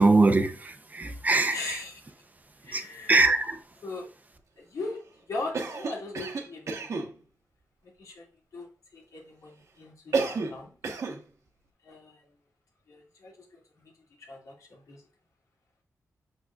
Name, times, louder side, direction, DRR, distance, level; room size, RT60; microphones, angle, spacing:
voice 1, 0.0-1.8 2.7-2.8 3.1-3.6, right 3 dB, 30° right, 0.6 m, -22 dB
voice 2, 1.5-2.0 2.6-3.2 3.8-4.1 4.6-5.0 5.3-7.1 8.0-8.3 8.5-10.8 11.8-12.2 12.9-13.9 14.2-15.0, left 3 dB, 80° left, 2.2 m, -39 dB
Cough, 5.5-7.1 10.1-10.6 10.8-11.2, right 4 dB, 65° right, 1.1 m, -30 dB
6.4 x 6.1 x 2.4 m
wide cardioid pair, 115°, 6 cm